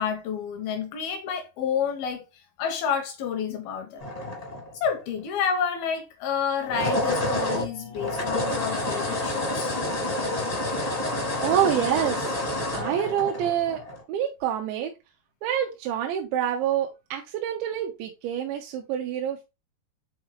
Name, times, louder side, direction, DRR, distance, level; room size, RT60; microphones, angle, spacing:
voice 1, 0.0-4.0 4.7-9.8, left 7 dB, 75° left, 2.3 m, -29 dB
sound 1, 4.0-5.0 6.5-14.0, left 1 dB, 45° left, 0.4 m, -28 dB
voice 2, 11.4-12.3 12.7-13.8 14.1-14.9 15.4-19.4, right 10 dB, 85° right, 3.1 m, -27 dB
7.8 x 4.0 x 3.4 m
omnidirectional pair, 5.2 m